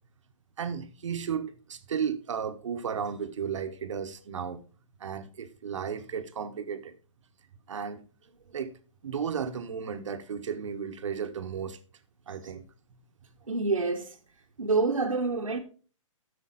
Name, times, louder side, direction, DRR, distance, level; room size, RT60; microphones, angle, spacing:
voice 1, 0.6-4.6 5.0-7.0 7.7-8.1 8.5-8.7 9.0-11.8 12.3-12.6, right 7 dB, 65° right, 1.2 m, -34 dB
voice 2, 13.5-14.1 14.6-15.6, right 3 dB, 80° right, 1.3 m, -27 dB
11.5 x 6.8 x 4.0 m
figure-of-eight pair, 125°, 17 cm